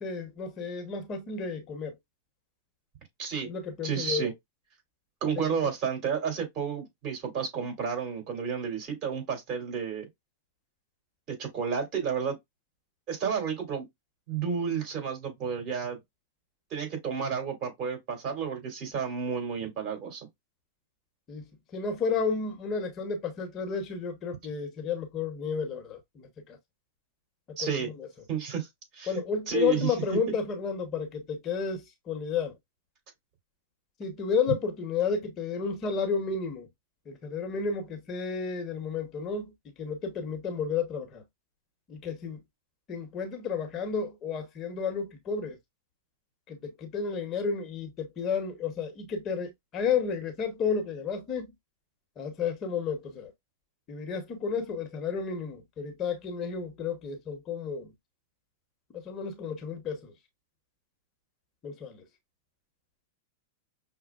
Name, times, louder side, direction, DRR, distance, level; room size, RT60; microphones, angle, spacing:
voice 1, 0.0-1.9 3.4-4.3 21.3-26.6 27.5-28.1 29.1-32.6 34.0-36.7 37.1-41.2 41.9-42.4 42.9-45.6 46.5-51.5 52.2-53.3 53.9-57.9 58.9-60.1 61.6-62.0, left 5 dB, 35° left, 1.0 m, -32 dB
voice 2, 3.2-3.5 3.8-4.3 5.2-10.1 11.3-12.4 13.1-13.9 14.3-16.0 16.7-20.3 27.6-27.9 28.3-28.7 28.9-29.2 29.5-29.9, right 6 dB, 40° right, 2.7 m, -31 dB
6.0 x 2.1 x 2.3 m
hypercardioid pair, 120°, 0 cm